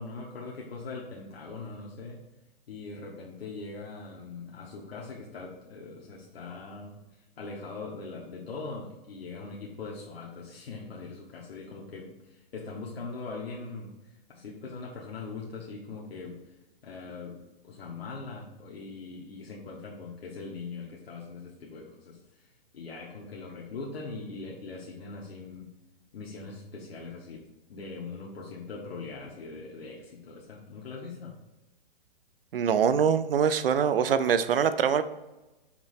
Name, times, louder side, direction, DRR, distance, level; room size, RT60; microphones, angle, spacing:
voice 1, 0.0-2.2 2.7-7.0 7.4-16.4 16.8-25.7 26.1-27.4 27.7-31.4, left 3 dB, 90° left, -3 dB, 1.4 m, -41 dB
voice 2, 32.5-35.0, right 7 dB, 70° right, 12 dB, 0.6 m, -24 dB
5.9 x 3.1 x 5.7 m, 1.0 s
hypercardioid pair, 180°, 29 cm